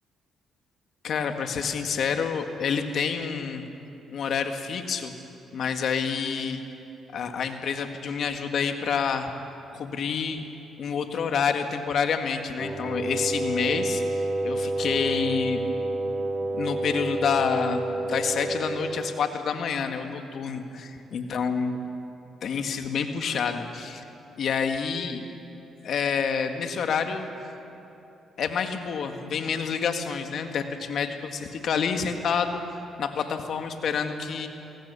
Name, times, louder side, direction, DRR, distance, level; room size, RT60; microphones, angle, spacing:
voice 1, 1.0-3.6 4.1-5.1 5.5-6.6 7.1-9.3 9.7-10.4 10.8-14.0 14.4-15.6 16.5-21.7 22.4-24.0 24.4-25.2 25.8-27.3 28.4-32.6 33.0-34.5, left 6 dB, 65° left, 6 dB, 1.8 m, -28 dB
Wind instrument woodwind instrument, 12.6-19.2, right 2 dB, 15° right, 3.5 m, -29 dB
24.0 x 18.0 x 7.0 m, 2.9 s
supercardioid pair, 70°, 0 cm